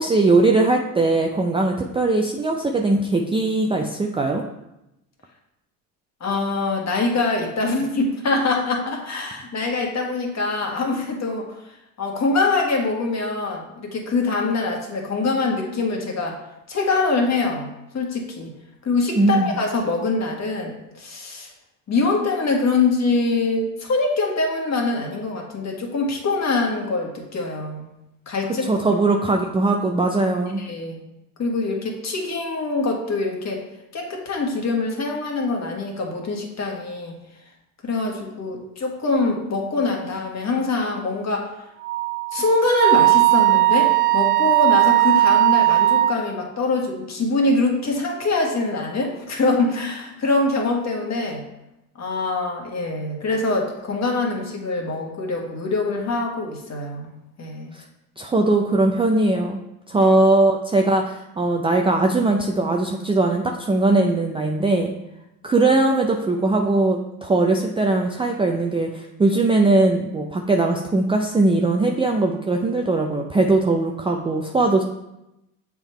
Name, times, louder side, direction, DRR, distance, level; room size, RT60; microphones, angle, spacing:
voice 1, 0.0-4.4 19.2-19.6 28.7-30.6 57.7-57.8 58.2-59.6 59.9-64.9 65.4-74.8, right 2 dB, 10° right, 1 dB, 0.4 m, -20 dB
voice 2, 6.2-11.5 12.0-16.4 16.7-17.7 17.9-18.5 18.8-21.5 21.9-27.9 28.3-28.7 30.6-31.0 31.4-33.6 33.9-37.1 37.8-41.5 42.3-51.4 52.0-57.1 57.4-57.7 60.0-60.1, left 3 dB, 35° left, 1 dB, 1.6 m, -24 dB
Wind instrument woodwind instrument, 41.8-46.2, right 16 dB, 80° right, 0.6 m, -17 dB
7.0 x 3.7 x 4.4 m, 0.89 s
hypercardioid pair, 80°, 48 cm